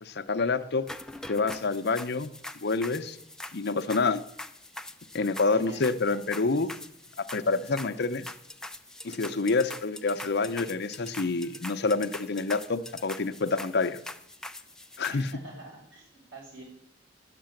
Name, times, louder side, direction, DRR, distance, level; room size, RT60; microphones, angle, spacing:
voice 1, 0.0-0.9 1.3-2.3 2.6-3.2 3.5-4.2 5.1-6.7 7.3-8.3 9.0-14.0 15.0-15.3, left 3 dB, 60° left, 10 dB, 0.7 m, -27 dB
sound 1, 0.9-15.3, left 1 dB, 5° left, 0.4 m, -43 dB
voice 2, 5.4-6.8 15.1-16.6, right 2 dB, 85° right, -4 dB, 5.9 m, -48 dB
10.5 x 6.8 x 8.9 m, 0.73 s
head